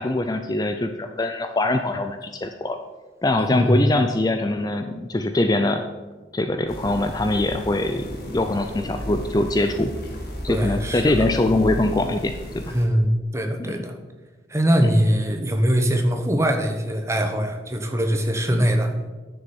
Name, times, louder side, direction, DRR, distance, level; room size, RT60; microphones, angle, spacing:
voice 1, 0.0-2.8 3.2-5.8 6.3-9.9 10.4-12.7 13.6-13.8 18.5-18.7, left 2 dB, 20° left, 7 dB, 0.4 m, -23 dB
voice 2, 3.5-3.8 10.5-11.3 12.6-13.9 14.5-18.9, equal, 15° right, 5 dB, 0.9 m, -22 dB
sound 1, 6.7-12.8, equal, 55° left, 2.2 m, -34 dB
9.9 x 7.0 x 5.4 m, 1.3 s
head